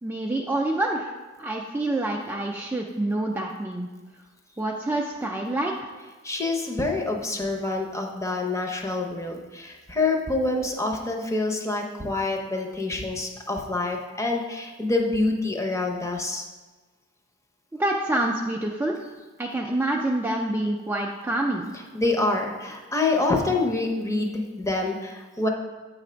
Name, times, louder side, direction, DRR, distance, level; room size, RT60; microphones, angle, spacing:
voice 1, 0.0-1.1 1.4-3.9 4.6-5.9 17.7-19.0 19.4-21.7, right 1 dB, 10° right, -1 dB, 0.4 m, -27 dB
voice 2, 6.2-16.4 21.9-25.5, left 2 dB, 15° left, 2 dB, 0.7 m, -26 dB
7.9 x 3.3 x 5.0 m, 1.3 s
head